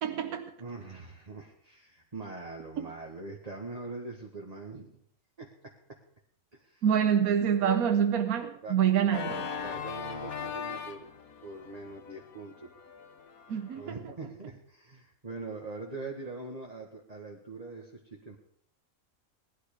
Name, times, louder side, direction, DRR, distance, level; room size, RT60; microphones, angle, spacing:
voice 1, 0.0-0.5 6.8-9.5 13.5-14.0, right 8 dB, 80° right, 1.4 m, -26 dB
voice 2, 0.6-5.0 5.4-6.0 6.5-6.9 7.2-7.3 7.6-7.8 8.6-8.8 9.5-11.1 11.4-12.7 13.7-18.4, right 3 dB, 25° right, 1.8 m, -43 dB
Organ, 9.1-13.9, left 7 dB, 75° left, 1.7 m, -40 dB
19.0 x 12.0 x 5.1 m
omnidirectional pair, 1.5 m